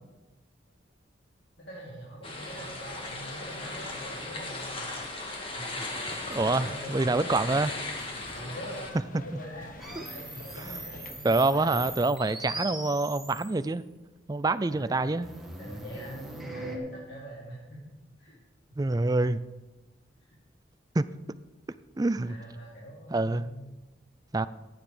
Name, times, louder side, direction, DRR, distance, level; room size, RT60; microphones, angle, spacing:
voice 1, 1.6-7.8 8.3-8.9 9.1-11.7 14.7-15.0 15.6-18.4 18.7-18.9 20.2-20.3 22.2-23.7, equal, 65° left, -6 dB, 2.9 m, -44 dB
sound 1, 2.2-8.9, left 2 dB, 30° left, 2.0 m, -37 dB
sound 2, 6.0-12.0, left 2 dB, 45° left, 1.1 m, -46 dB
voice 2, 6.3-7.7 10.0-10.1 10.6-10.8 11.2-13.8 14.3-15.3 18.8-19.4 20.9-21.0 22.0-22.3 23.1-23.5 24.3-24.5, right 2 dB, 20° right, 14 dB, 0.4 m, -26 dB
sound 3, 9.8-13.6 15.2-16.8, right 2 dB, ahead, 2.1 m, -41 dB
15.5 x 9.1 x 5.0 m, 1.1 s
head